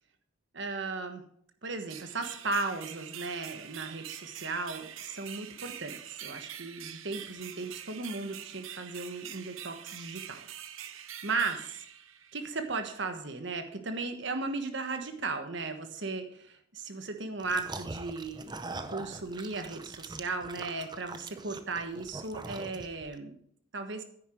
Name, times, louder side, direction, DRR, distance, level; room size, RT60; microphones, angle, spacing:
voice 1, 0.5-1.2 1.6-10.4 11.2-11.6 12.3-18.5 18.9-23.4 23.7-24.0, right 3 dB, 60° right, 6 dB, 1.3 m, -36 dB
sound 1, 1.9-12.6, right 10 dB, 80° right, 0.8 m, -45 dB
sound 2, 17.4-23.1, right 3 dB, 20° right, 0.6 m, -42 dB
9.8 x 9.3 x 4.5 m, 0.67 s
head